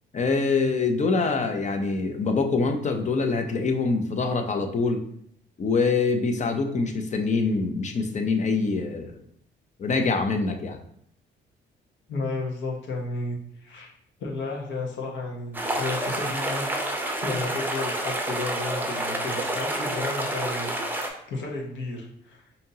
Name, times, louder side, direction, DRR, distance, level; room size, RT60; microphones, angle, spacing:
voice 1, 0.1-5.0 5.6-9.1 9.8-10.8, left 4 dB, 35° left, 6 dB, 0.6 m, -24 dB
voice 2, 12.1-13.9 14.2-16.7 17.2-20.7 21.3-22.4, left 3 dB, 70° left, -1 dB, 1.0 m, -32 dB
sound 1, 15.5-21.1, right 1 dB, 10° right, 0.7 m, -29 dB
5.1 x 2.7 x 2.8 m, 0.69 s
cardioid pair, 90°, 20 cm